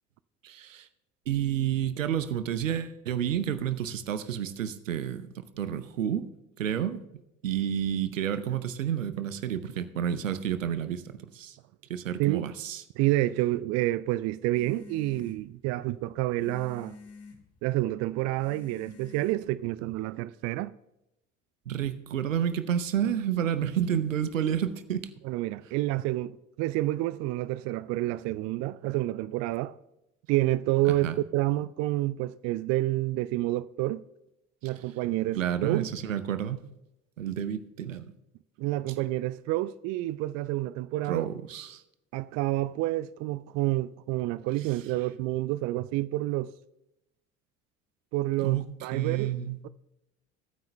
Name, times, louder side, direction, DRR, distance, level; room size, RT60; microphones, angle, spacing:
voice 1, 0.4-0.9 1.3-6.3 6.6-7.0 7.4-11.6 11.9-12.8 21.7-25.1 31.0-31.2 34.6-34.7 35.3-36.6 37.2-38.1 41.0-41.8 44.6-44.7 48.4-49.6, right 9 dB, 80° right, 0.7 m, -30 dB
voice 2, 13.0-17.0 17.6-20.7 25.2-29.7 30.3-31.1 31.3-34.0 34.6-35.9 38.6-41.3 42.1-46.5 48.1-49.3 49.6-49.7, right 17 dB, 45° right, 0.4 m, -29 dB
sound 1, 14.5-20.0, left 4 dB, 40° left, 1.8 m, -50 dB
21.5 x 9.2 x 2.2 m
figure-of-eight pair, 60°, 39 cm